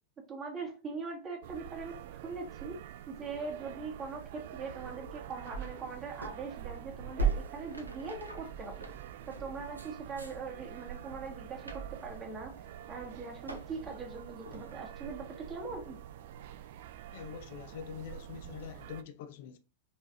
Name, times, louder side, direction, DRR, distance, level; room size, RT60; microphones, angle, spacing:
voice 1, 0.3-2.8 3.1-8.8 9.3-12.5 12.9-16.0, right 4 dB, 25° right, 1.7 m, -41 dB
sound 1, 1.4-19.0, right 11 dB, 55° right, 0.3 m, -47 dB
sound 2, 4.1-18.7, right 5 dB, 80° right, 0.8 m, -42 dB
voice 2, 17.1-19.6, left 8 dB, 50° left, 0.5 m, -44 dB
5.4 x 3.3 x 2.8 m
figure-of-eight pair, 90°, 0 cm